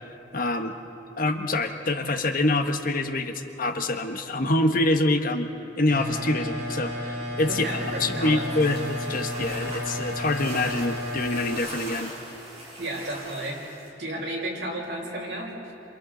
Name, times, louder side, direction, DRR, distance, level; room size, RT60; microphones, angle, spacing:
voice 1, 0.3-0.7 1.2-5.5 5.8-7.6 8.0-12.1, left 2 dB, 50° left, 5 dB, 1.2 m, -25 dB
sound 1, 5.9-11.5, left 1 dB, 55° right, 7.4 m, -32 dB
sound 2, 7.4-13.1, left 1 dB, 5° right, 3.7 m, -49 dB
voice 2, 7.5-8.5 12.8-15.7, right 1 dB, 80° right, -4 dB, 5.9 m, -33 dB
sound 3, 8.6-13.9, right 2 dB, 30° right, 5.7 m, -41 dB
29.5 x 27.0 x 3.9 m, 2.8 s
head